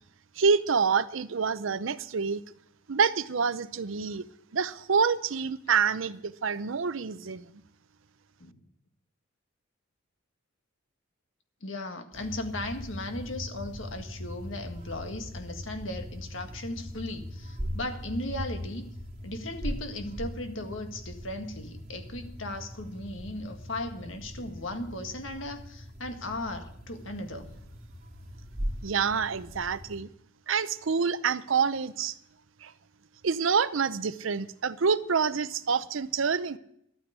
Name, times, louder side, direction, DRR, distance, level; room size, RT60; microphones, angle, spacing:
voice 1, 0.4-2.4 2.9-4.2 4.5-7.5 28.8-30.1 30.5-32.1 32.6-32.7 33.2-36.6, right 5 dB, 75° right, 0.6 m, -27 dB
voice 2, 11.6-18.9 19.2-27.5, left 1 dB, 70° left, 1.8 m, -37 dB
sound 1, 12.1-30.0, equal, 35° right, 2.6 m, -40 dB
12.0 x 9.1 x 8.0 m
head